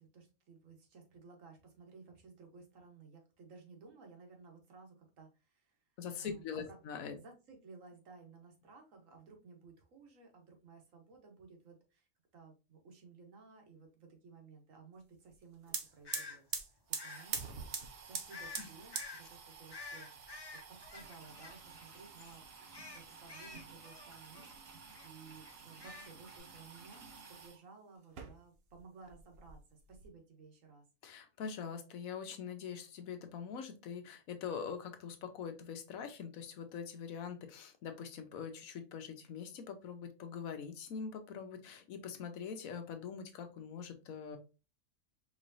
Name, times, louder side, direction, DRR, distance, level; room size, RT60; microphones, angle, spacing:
voice 1, 0.0-5.8 6.2-6.8 7.1-16.4 16.7-17.4 18.1-22.4 22.9-30.8, right 4 dB, 70° right, 3 dB, 1.4 m, -57 dB
voice 2, 6.0-7.2 18.6-18.7 31.0-44.4, left 6 dB, 85° left, 7 dB, 1.2 m, -43 dB
kitchen hob, 15.3-15.4 15.6-27.6 28.0-28.8 29.1-30.1, right 6 dB, 55° right, 0.8 m, -46 dB
sound 1, 16.0-16.4 17.0-17.3 18.3-18.6 18.9-19.2 19.7-21.9 22.2-22.4 22.7-24.6 24.9-25.1 25.4-26.4, left 4 dB, 30° left, 0.5 m, -49 dB
sound 2, 21.0-27.5, right 2 dB, 90° right, 2.5 m, -59 dB
4.5 x 3.1 x 2.6 m, 0.31 s
omnidirectional pair, 1.4 m